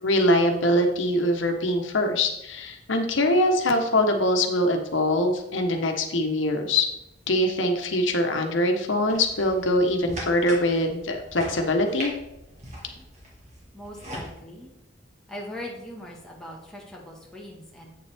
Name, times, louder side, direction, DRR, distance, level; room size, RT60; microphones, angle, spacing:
voice 1, 0.0-6.9 7.3-12.1, left 1 dB, 85° left, 4 dB, 1.1 m, -23 dB
sound 1, 9.1-14.3, equal, 40° right, 2.1 m, -40 dB
voice 2, 13.7-14.7 15.3-17.9, left 1 dB, 5° left, -4 dB, 1.5 m, -40 dB
8.4 x 7.0 x 3.5 m, 0.86 s
head